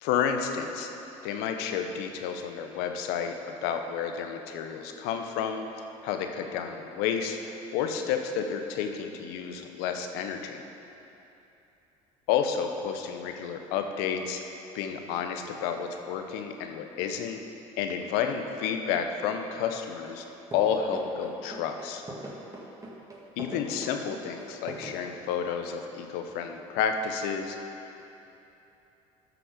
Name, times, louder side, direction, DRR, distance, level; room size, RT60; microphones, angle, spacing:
voice 1, 0.0-0.9 1.2-5.6 6.0-7.4 7.7-10.6 12.3-14.4 14.7-17.4 17.8-20.3 20.5-22.0 23.4-28.0, left 7 dB, 70° left, 5 dB, 0.9 m, -31 dB
sound 1, 20.0-20.2 20.5-24.9, right 1 dB, 20° right, 1.8 m, -41 dB
13.0 x 6.0 x 5.2 m, 3.0 s
hypercardioid pair, 70°, 17 cm